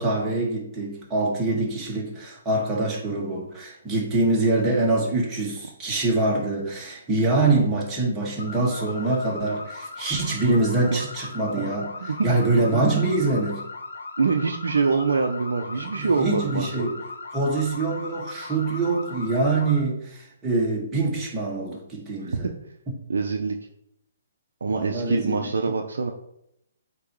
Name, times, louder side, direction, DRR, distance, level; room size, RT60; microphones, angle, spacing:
voice 1, 0.0-11.9 12.2-13.6 16.0-17.0 17.3-22.5 24.7-25.7, right 2 dB, 15° right, -4 dB, 2.0 m, -24 dB
sound 1, 8.4-19.8, left 3 dB, 75° left, 0.9 m, -38 dB
voice 2, 14.2-16.7 22.2-22.4 23.1-23.6 24.6-26.1, right 4 dB, 75° right, 3 dB, 0.7 m, -24 dB
8.2 x 3.0 x 4.7 m, 0.78 s
figure-of-eight pair, 135°, 0 cm